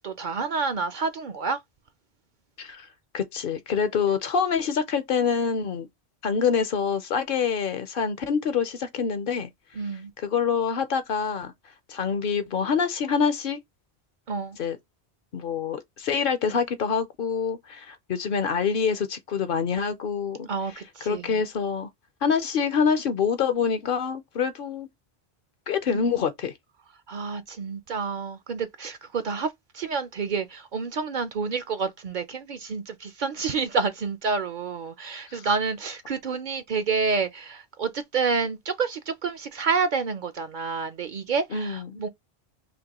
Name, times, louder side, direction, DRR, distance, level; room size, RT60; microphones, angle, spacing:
voice 1, 0.0-1.6 9.8-10.1 14.3-14.6 20.5-21.4 25.9-26.0 27.1-42.1, right 5 dB, 55° right, 0.6 m, -29 dB
voice 2, 3.1-5.9 6.2-9.5 10.2-11.5 11.9-13.6 14.6-14.8 15.3-20.5 21.1-21.9 22.2-24.9 25.7-26.5 35.3-35.4 41.5-42.0, left 6 dB, 60° left, 0.8 m, -26 dB
5.1 x 2.2 x 2.9 m
omnidirectional pair, 1.1 m